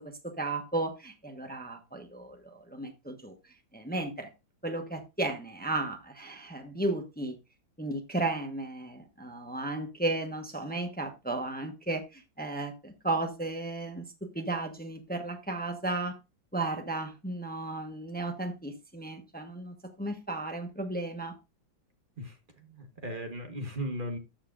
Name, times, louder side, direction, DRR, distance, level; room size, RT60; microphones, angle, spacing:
voice 1, 0.2-3.3 3.7-4.3 4.6-7.4 7.8-14.0 14.3-16.2 16.5-21.3, right 2 dB, 10° left, 5 dB, 0.7 m, -34 dB
voice 2, 22.7-24.2, equal, 30° right, 5 dB, 1.3 m, -36 dB
13.0 x 7.4 x 2.5 m, 0.25 s
omnidirectional pair, 2.2 m